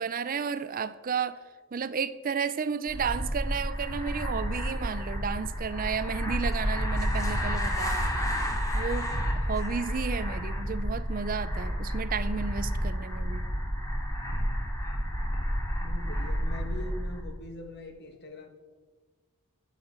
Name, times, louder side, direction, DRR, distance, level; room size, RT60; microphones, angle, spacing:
voice 1, 0.0-1.4 1.7-8.1 8.7-13.5, right 6 dB, 40° right, 0.4 m, -32 dB
sound 1, 2.9-17.3, equal, 15° left, 2.4 m, -30 dB
voice 2, 15.8-18.5, left 2 dB, 50° left, 1.7 m, -42 dB
11.5 x 8.2 x 7.3 m
head